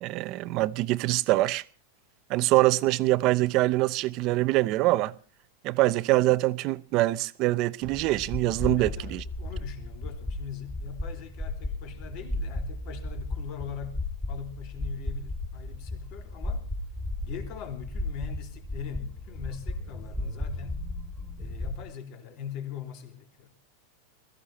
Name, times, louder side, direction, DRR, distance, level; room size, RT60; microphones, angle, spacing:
voice 1, 0.0-1.6 2.3-5.1 5.6-9.2, right 18 dB, 40° right, 0.7 m, -24 dB
sound 1, 7.8-21.9, left 2 dB, 10° left, 3.0 m, -35 dB
voice 2, 8.8-14.0 14.3-16.6 17.2-20.8 21.4-23.6, left 8 dB, 45° left, 3.6 m, -41 dB
21.0 x 15.0 x 4.2 m
supercardioid pair, 160°, 0 cm